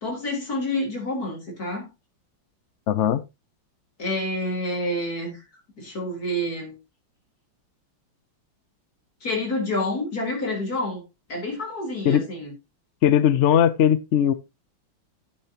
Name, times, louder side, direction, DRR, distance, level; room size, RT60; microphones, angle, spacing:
voice 1, 0.0-1.9 4.0-5.4 5.8-6.8 9.2-11.0 11.3-12.5, left 1 dB, 50° left, 4.2 m, -28 dB
voice 2, 2.9-3.2 12.0-12.2 13.0-14.3, left 9 dB, 70° left, 0.6 m, -19 dB
12.0 x 8.9 x 2.9 m
omnidirectional pair, 2.1 m